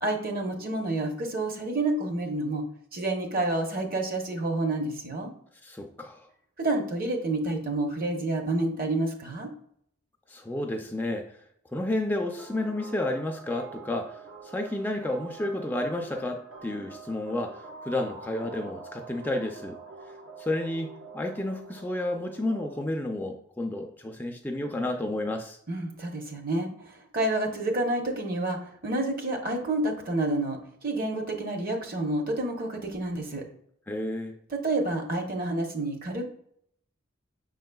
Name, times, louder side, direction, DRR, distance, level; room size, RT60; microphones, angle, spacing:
voice 1, 0.0-2.6 2.9-5.3 6.6-9.5 25.7-33.4 34.5-36.3, right 2 dB, 45° right, 3 dB, 0.8 m, -29 dB
voice 2, 5.6-6.3 10.3-11.4 11.7-19.8 20.4-25.6 33.9-34.4, left 1 dB, 10° left, 2 dB, 0.3 m, -31 dB
sound 1, 12.2-22.9, right 4 dB, 75° right, 0.8 m, -45 dB
6.1 x 3.8 x 2.2 m, 0.68 s
head